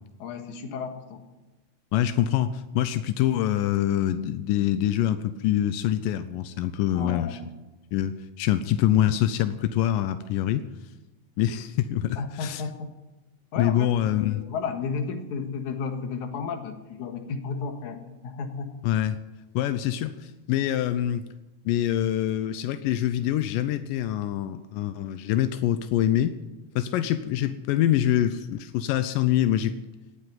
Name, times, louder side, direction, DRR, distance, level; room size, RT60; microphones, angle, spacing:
voice 1, 0.2-1.2 6.9-7.4 12.2-13.0 13.5-18.8, left 5 dB, 65° left, 6 dB, 2.8 m, -33 dB
voice 2, 1.9-7.4 7.9-10.6 11.4-12.6 13.6-14.4 18.8-19.2 19.5-21.2 21.7-26.4 26.8-29.8, left 11 dB, 90° left, 11 dB, 2.4 m, -25 dB
18.0 x 8.0 x 9.3 m, 1.1 s
omnidirectional pair, 3.8 m